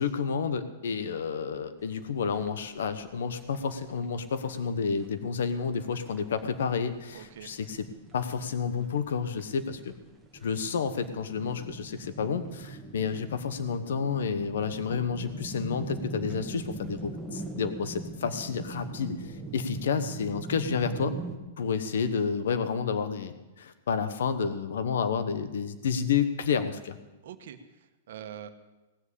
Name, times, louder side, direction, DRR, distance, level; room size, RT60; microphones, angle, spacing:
voice 1, 0.0-7.8 8.1-9.9 10.4-21.2 21.6-27.0, left 6 dB, 80° left, 11 dB, 1.0 m, -30 dB
sound 1, 1.8-21.4, right 3 dB, 5° right, 1.5 m, -42 dB
voice 2, 7.1-7.5 27.2-28.5, right 10 dB, 65° right, 8 dB, 1.2 m, -44 dB
18.0 x 7.5 x 8.3 m, 1.1 s
supercardioid pair, 165°, 0 cm